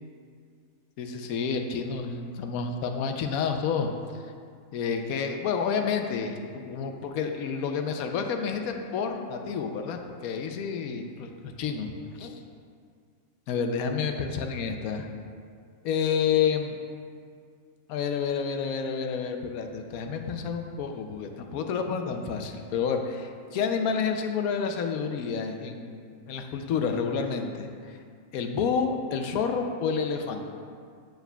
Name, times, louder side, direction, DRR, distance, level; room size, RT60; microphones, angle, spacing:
voice 1, 1.0-4.2 4.7-11.9 12.2-12.3 13.5-15.1 15.8-16.8 17.9-28.0 28.3-30.5, left 6 dB, 90° left, 4 dB, 1.0 m, -29 dB
7.7 x 7.1 x 2.2 m, 2.2 s
omnidirectional pair, 1.5 m